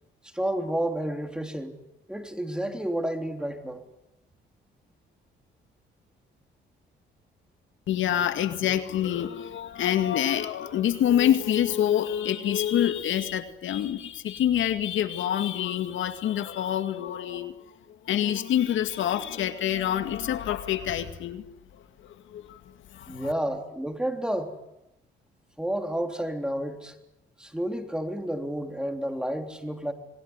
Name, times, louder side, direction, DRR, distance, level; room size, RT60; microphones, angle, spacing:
voice 1, 0.3-1.8 2.1-3.8 23.1-24.5 25.6-27.0 27.4-29.9, right 1 dB, 5° right, 5 dB, 3.5 m, -30 dB
voice 2, 7.9-17.6 17.9-21.4 21.7-23.3, left 10 dB, 75° left, 9 dB, 2.1 m, -27 dB
26.5 x 21.0 x 9.8 m, 0.89 s
cardioid pair, 90°, 20 cm